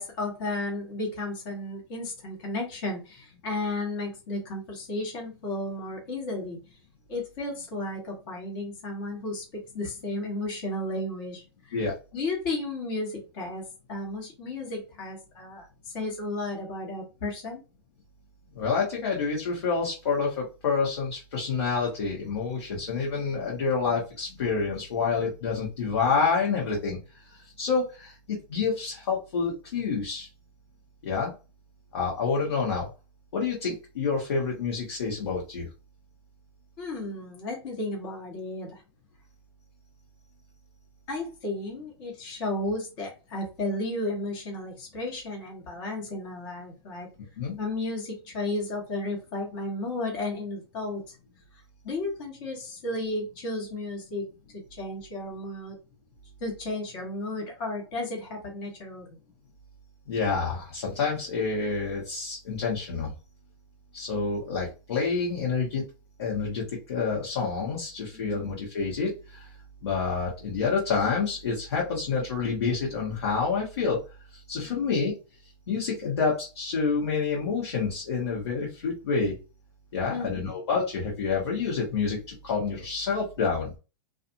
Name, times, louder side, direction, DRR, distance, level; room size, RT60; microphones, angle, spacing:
voice 1, 0.0-6.6 7.1-9.4 9.7-11.8 12.1-13.6 13.9-17.6 36.8-38.8 41.1-47.1 47.6-51.2 51.8-54.3 54.8-55.7 56.4-59.1 68.1-68.4 74.6-74.9 80.1-80.5, left 2 dB, 55° left, -1 dB, 1.4 m, -33 dB
voice 2, 18.5-30.3 31.0-31.3 31.9-32.9 33.3-35.7 47.4-47.6 60.1-63.1 63.9-65.8 66.2-69.5 69.8-74.0 74.3-75.1 75.7-79.4 79.9-83.7, left 5 dB, 75° left, -4 dB, 1.2 m, -28 dB
2.5 x 2.4 x 2.6 m, 0.30 s
hypercardioid pair, 115°, 14 cm